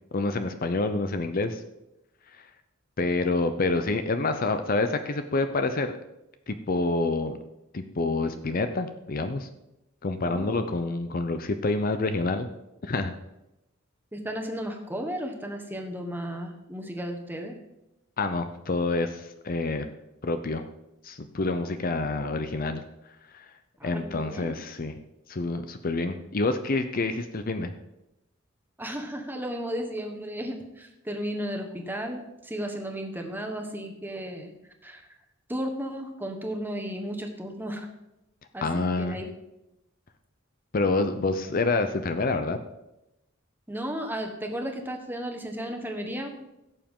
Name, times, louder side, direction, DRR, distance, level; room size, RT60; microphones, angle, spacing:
voice 1, 0.1-1.6 2.4-2.5 3.0-5.9 6.5-7.4 7.7-9.5 10.0-12.5 12.8-13.1 18.2-19.9 20.2-20.6 21.0-22.8 23.3-23.5 23.8-24.9 25.3-27.7 38.6-39.2 40.7-42.6, left 3 dB, 45° left, 9 dB, 0.6 m, -27 dB
voice 2, 10.2-10.7 14.1-17.6 23.8-24.5 28.8-34.5 34.8-35.0 35.5-37.9 38.5-39.3 43.7-46.5, equal, 10° right, 3 dB, 1.3 m, -34 dB
16.0 x 7.1 x 3.7 m, 0.90 s
head